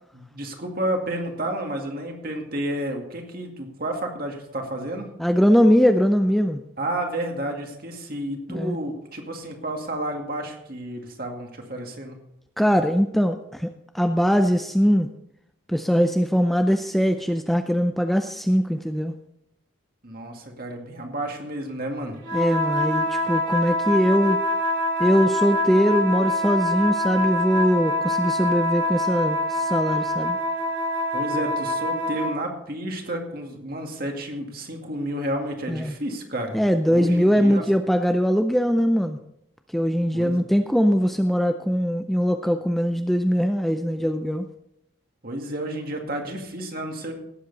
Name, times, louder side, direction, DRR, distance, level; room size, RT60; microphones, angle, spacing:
voice 1, 0.1-5.1 6.8-12.2 20.0-22.2 31.1-36.6 36.9-37.7 40.1-40.4 45.2-47.2, right 1 dB, 45° right, 2 dB, 2.1 m, -31 dB
voice 2, 5.2-6.6 8.5-8.8 12.6-15.1 15.7-19.1 22.3-24.4 25.0-30.4 35.7-35.9 36.5-39.2 39.7-44.4, equal, ahead, 6 dB, 0.4 m, -21 dB
sound 1, 22.2-32.4, left 1 dB, 65° right, 4.1 m, -25 dB
18.0 x 7.9 x 4.0 m, 0.79 s
head